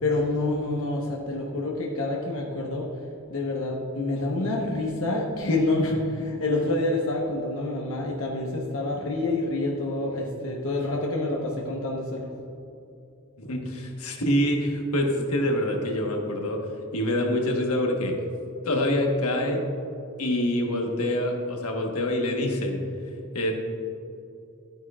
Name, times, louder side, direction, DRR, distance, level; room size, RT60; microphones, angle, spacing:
voice 1, 0.0-2.9 3.3-12.3, left 2 dB, 65° left, -2 dB, 1.0 m, -27 dB
voice 2, 13.4-18.2 18.6-19.7 20.2-23.5, left 1 dB, 85° left, 1 dB, 1.3 m, -26 dB
12.5 x 9.1 x 2.4 m, 2.7 s
head